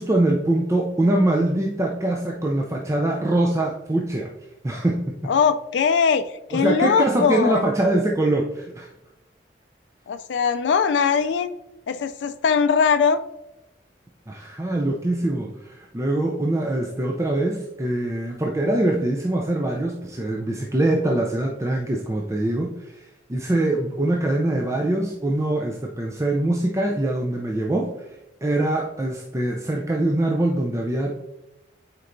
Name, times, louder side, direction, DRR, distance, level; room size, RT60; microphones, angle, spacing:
voice 1, 0.0-4.3 4.6-5.1 6.5-8.9 14.3-28.1 28.4-31.3, right 1 dB, 15° right, 0 dB, 0.4 m, -23 dB
voice 2, 5.2-7.6 10.1-11.5 11.9-13.2, left 6 dB, 80° left, 9 dB, 0.3 m, -21 dB
9.4 x 4.4 x 2.6 m, 0.93 s
head